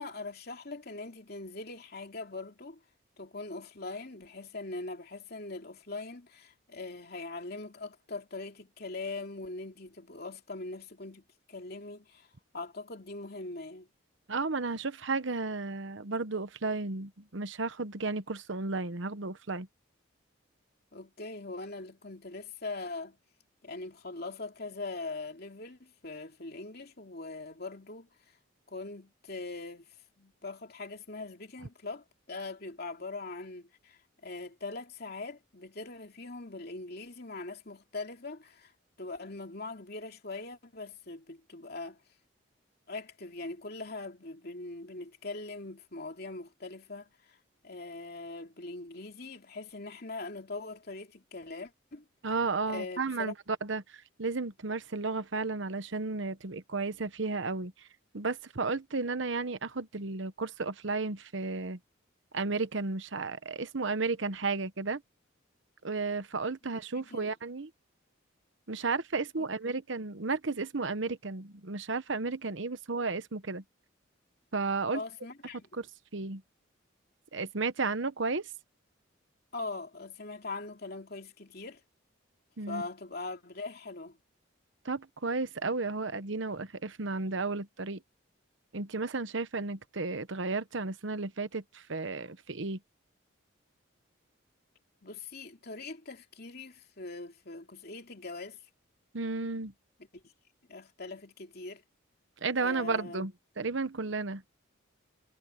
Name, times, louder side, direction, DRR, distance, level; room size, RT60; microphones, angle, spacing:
voice 1, 0.0-2.8 3.2-12.3 12.5-13.9 20.9-23.2 23.6-28.1 28.7-38.7 39.0-42.0 42.9-47.4 47.6-52.0 52.6-53.3 66.9-67.3 69.4-69.5 74.9-75.6 79.5-81.8 82.7-84.2 95.0-98.6 100.1-100.2 100.7-101.8 102.6-103.3, left 3 dB, 50° left, 2.9 m, -41 dB
voice 2, 14.3-19.7 52.2-53.3 53.6-57.9 58.1-61.8 62.3-65.0 65.8-67.7 68.7-73.6 74.5-75.0 75.7-75.9 76.1-76.4 77.3-78.5 82.6-82.8 84.8-88.0 88.7-92.8 99.1-99.7 102.4-104.4, right 3 dB, 65° right, 1.0 m, -33 dB
head